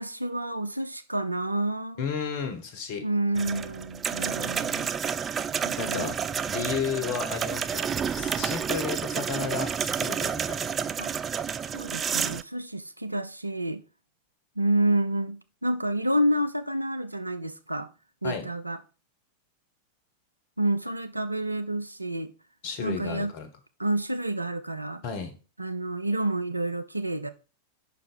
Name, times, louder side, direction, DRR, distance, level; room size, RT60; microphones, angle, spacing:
voice 1, 0.0-2.1 3.0-4.9 5.6-6.1 11.0-11.1 11.7-13.8 14.6-17.9 18.2-18.8 20.6-22.3 22.8-23.3 23.8-25.0 25.6-27.3, right 1 dB, 85° right, 0.5 m, -29 dB
voice 2, 2.0-3.0 5.8-6.1 6.4-10.7 18.2-18.5 22.6-23.5 25.0-25.4, left 6 dB, 50° left, 1.4 m, -33 dB
sound 1, 3.3-12.4, right 7 dB, 20° right, 0.3 m, -30 dB
5.8 x 4.7 x 5.3 m
figure-of-eight pair, 90°, 0 cm